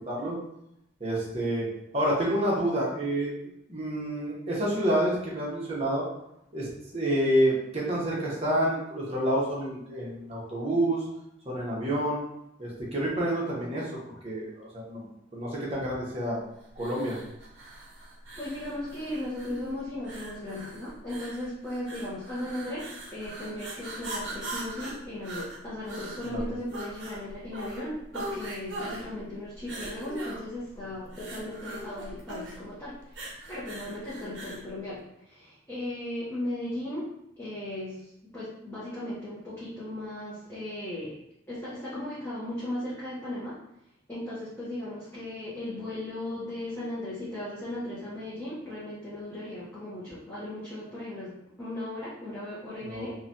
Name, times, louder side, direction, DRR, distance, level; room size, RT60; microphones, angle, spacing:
voice 1, 0.1-0.4 1.0-1.7 1.9-3.3 3.7-6.1 6.5-11.0 11.4-12.2 12.6-14.0 14.2-15.0 15.3-16.4 16.8-17.2 26.3-26.4 52.8-53.1, right 1 dB, 30° right, -5 dB, 0.8 m, -28 dB
sound 1, 16.8-34.7, right 1 dB, 65° right, 0.6 m, -41 dB
voice 2, 18.4-37.1 37.4-41.2 41.5-43.6 44.1-53.1, left 1 dB, 10° left, -10 dB, 0.6 m, -37 dB
3.0 x 2.2 x 2.6 m, 0.80 s
head